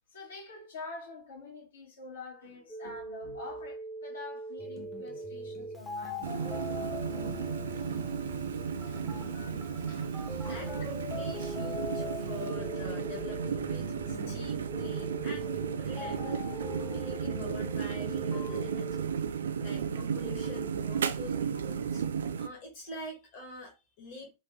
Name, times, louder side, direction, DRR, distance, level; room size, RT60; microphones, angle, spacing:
voice 1, 0.1-6.5 7.7-8.0 8.8-9.0 9.7-10.9, left 3 dB, 70° left, 1.5 m, -47 dB
Telephone, 2.7-13.5 14.7-15.7 18.0-19.0 20.2-20.7, right 2 dB, ahead, 1.0 m, -44 dB
sound 1, 4.6-18.6, left 2 dB, 25° left, 0.6 m, -42 dB
sound 2, 6.2-22.5, right 7 dB, 65° right, 0.3 m, -34 dB
voice 2, 9.9-19.1 19.6-22.0 22.4-24.3, left 2 dB, 45° left, 1.3 m, -46 dB
3.7 x 2.6 x 2.7 m
figure-of-eight pair, 90°, 0 cm